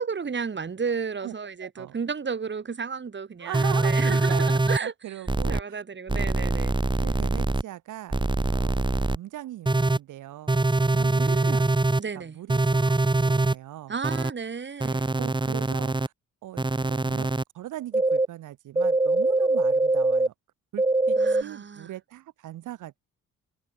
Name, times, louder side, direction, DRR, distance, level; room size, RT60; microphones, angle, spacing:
voice 1, 0.0-4.9 5.5-6.7 11.2-11.7 12.0-12.4 13.9-15.2 21.2-21.9, right 5 dB, 35° right, 5.6 m, -33 dB
voice 2, 1.6-2.0 3.4-5.8 6.1-6.3 7.0-8.2 8.5-14.0 15.1-16.1 16.4-20.3 20.7-23.0, right 14 dB, 80° right, 5.4 m, -40 dB
sound 1, 3.5-4.8 5.3-5.6 6.1-7.6 8.1-9.2 9.7-10.0 10.5-12.0 12.5-13.5 14.0-14.3 14.8-16.1 16.6-17.4 17.9-18.3 18.8-20.3 20.8-21.4, right 2 dB, 15° right, 3.2 m, -23 dB
cardioid pair, 90°, 30 cm